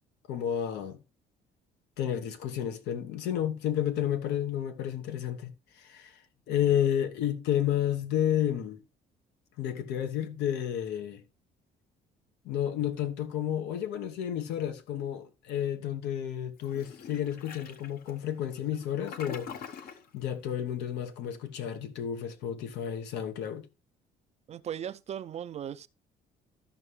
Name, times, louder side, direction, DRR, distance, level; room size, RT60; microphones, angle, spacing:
voice 1, 0.3-1.0 2.0-6.2 6.5-8.8 9.6-11.2 12.4-23.7, left 10 dB, 85° left, 1.2 m, -31 dB
Toilet flush, 16.6-20.1, left 7 dB, 60° left, 1.1 m, -45 dB
voice 2, 24.5-25.9, right 9 dB, 40° right, 0.5 m, -37 dB
13.5 x 5.6 x 3.2 m
cardioid pair, 110°, 17 cm